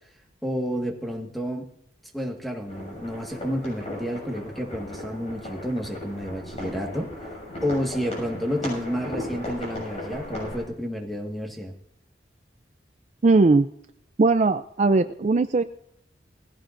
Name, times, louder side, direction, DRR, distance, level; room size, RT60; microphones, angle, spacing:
voice 1, 0.4-1.6 2.1-7.1 7.6-11.7, equal, ahead, 2 dB, 1.6 m, -30 dB
sound 1, 2.7-10.6, left 1 dB, 40° left, 6.7 m, -36 dB
voice 2, 13.2-13.7 14.2-15.6, right 3 dB, 40° right, 10 dB, 0.4 m, -19 dB
19.5 x 16.0 x 2.6 m, 0.71 s
head